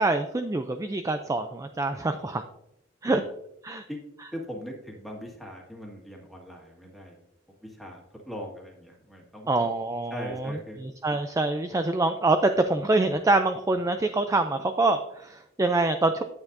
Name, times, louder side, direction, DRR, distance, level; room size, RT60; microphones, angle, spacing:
voice 1, 0.0-2.4 3.0-3.2 3.6-3.8 9.5-16.2, right 2 dB, 15° right, 8 dB, 0.4 m, -25 dB
voice 2, 4.3-7.2 7.6-9.5 10.1-10.8, equal, ahead, -1 dB, 1.8 m, -40 dB
9.7 x 8.7 x 2.6 m, 0.82 s
head